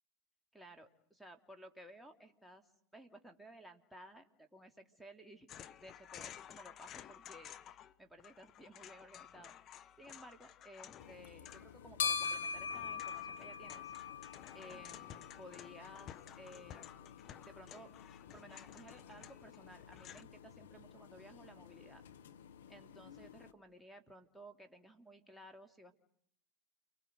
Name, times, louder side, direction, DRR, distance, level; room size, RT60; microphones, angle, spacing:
voice 1, 0.5-7.5 8.0-9.5 10.0-13.9 14.5-16.9 17.4-17.9 18.3-22.0 22.7-25.9, equal, ahead, 3 dB, 2.8 m, -56 dB
sound 1, 5.5-7.9 8.2-20.2, left 10 dB, 40° left, 1.2 m, -54 dB
sound 2, 11.0-23.5, left 6 dB, 85° left, 1.2 m, -45 dB
29.5 x 24.5 x 8.0 m, 0.67 s
hypercardioid pair, 90°, 0 cm